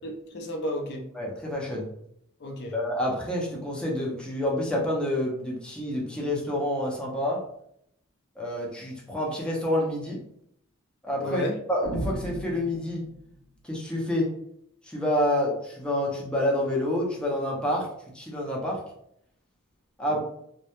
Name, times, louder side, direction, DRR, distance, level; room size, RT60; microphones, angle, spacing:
voice 1, 0.0-1.1 2.4-2.7 11.2-11.6 20.1-20.2, equal, 55° left, 3 dB, 0.5 m, -32 dB
voice 2, 1.1-1.9 2.7-7.4 8.4-10.2 11.0-13.1 13.6-14.3 14.8-17.9 18.1-18.8 20.0-20.2, left 1 dB, 5° left, -4 dB, 0.5 m, -28 dB
sound 1, 11.8-13.4, right 1 dB, 65° right, 0.6 m, -35 dB
2.2 x 2.0 x 2.8 m, 0.72 s
head